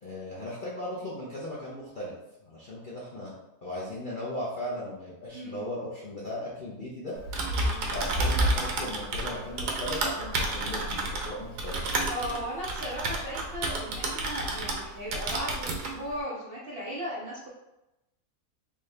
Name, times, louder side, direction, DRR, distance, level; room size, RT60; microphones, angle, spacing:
voice 1, 0.0-2.1 2.4-3.3 3.6-7.1 7.9-11.8, left 1 dB, 50° left, -7 dB, 0.6 m, -37 dB
Typing, 7.2-14.8 15.1-15.9, right 2 dB, 85° right, 1.3 m, -30 dB
voice 2, 7.5-8.0 12.1-17.5, equal, 55° right, -6 dB, 0.6 m, -37 dB
3.5 x 2.7 x 3.2 m, 0.93 s
omnidirectional pair, 1.7 m